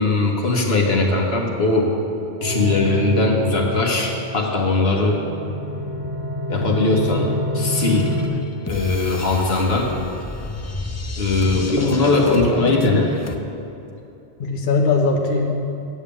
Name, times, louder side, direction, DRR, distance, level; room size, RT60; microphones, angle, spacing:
voice 1, 0.0-1.9 2.4-5.2 6.5-8.1 8.7-9.9 11.2-13.1, left 3 dB, 80° left, 0 dB, 1.5 m, -20 dB
sound 1, 2.4-8.3, left 1 dB, 15° right, 1.7 m, -28 dB
voice 2, 6.6-6.9 11.4-13.0 14.4-15.6, left 3 dB, 55° left, 1 dB, 1.0 m, -22 dB
sound 2, 7.7-13.4, left 2 dB, 25° left, 0.4 m, -32 dB
8.0 x 7.4 x 8.6 m, 2.8 s
omnidirectional pair, 1.0 m